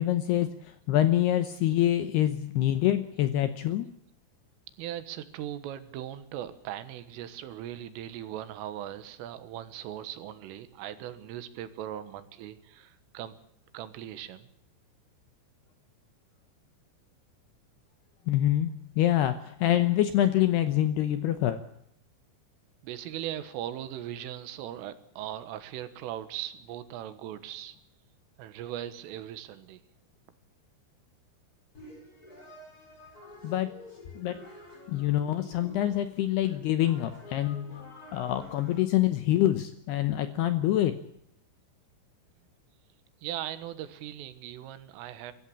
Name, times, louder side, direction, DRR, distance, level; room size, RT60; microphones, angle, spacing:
voice 1, 0.0-3.9 18.3-21.6 33.4-33.8 34.2-34.4 34.9-37.8 38.1-41.0, left 13 dB, 75° left, 10 dB, 2.4 m, -26 dB
voice 2, 4.8-13.4 13.7-14.5 22.8-27.8 28.4-29.8 43.2-45.3, right 12 dB, 80° right, 12 dB, 4.0 m, -39 dB
sound 1, 31.7-38.8, left 2 dB, 20° left, 5.3 m, -49 dB
23.5 x 14.5 x 8.7 m, 0.75 s
omnidirectional pair, 5.8 m